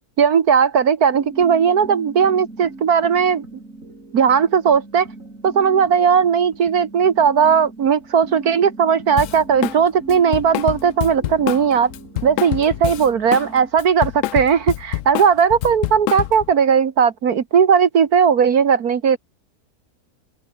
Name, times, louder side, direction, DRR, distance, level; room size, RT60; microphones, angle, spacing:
voice 1, 0.2-3.4 4.1-5.1 5.4-11.9 12.2-19.2, right 7 dB, 70° right, 1.8 m, -17 dB
sound 1, 1.1-13.7, right 2 dB, 55° right, 5.8 m, -39 dB
Drum kit, 9.2-9.8 10.1-13.5 13.8-16.5, left 14 dB, 65° left, 0.8 m, -26 dB
open air
omnidirectional pair, 1.7 m